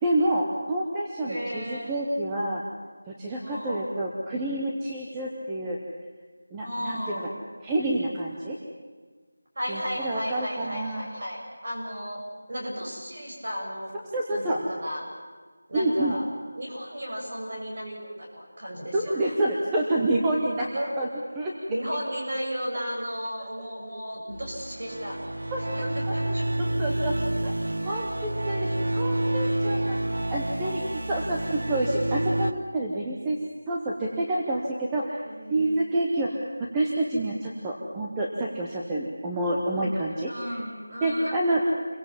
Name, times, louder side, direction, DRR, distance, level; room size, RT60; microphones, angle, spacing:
voice 1, 0.0-2.6 3.1-5.8 6.5-7.0 7.6-8.6 9.7-11.1 14.1-14.6 15.7-16.2 18.9-20.7 21.0-21.1 21.3-21.5 25.5-25.6 26.0-26.3 26.8-27.2 27.4-27.5 27.8-28.7 28.9-33.4 33.7-35.2 35.5-40.3 41.0-41.6, right 1 dB, 5° right, -3 dB, 0.9 m, -28 dB
voice 2, 1.2-1.9 3.4-3.9 6.6-7.3 9.5-12.2 12.5-13.9 14.3-15.0 15.7-16.2 16.5-19.3 20.7-20.9 21.7-25.2 25.7-26.5 35.2-35.8 39.7-40.0 40.3-41.5, equal, 35° right, -2 dB, 6.9 m, -34 dB
sound 1, 24.3-32.5, right 1 dB, 85° right, 1.2 m, -28 dB
28.5 x 22.5 x 7.4 m, 1.5 s
figure-of-eight pair, 180°, 0 cm